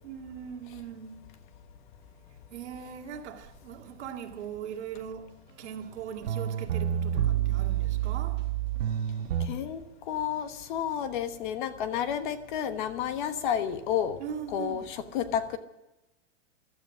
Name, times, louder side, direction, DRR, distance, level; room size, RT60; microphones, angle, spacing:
voice 1, 0.0-1.3 2.5-8.5 14.2-15.0, right 8 dB, 65° right, 2.1 m, -40 dB
sound 1, 5.9-6.0 6.2-9.5, right 10 dB, 80° right, 1.4 m, -28 dB
voice 2, 9.5-9.8 10.1-14.2 14.5-15.6, left 9 dB, 40° left, 1.2 m, -31 dB
16.5 x 12.5 x 6.3 m
supercardioid pair, 170°, 37 cm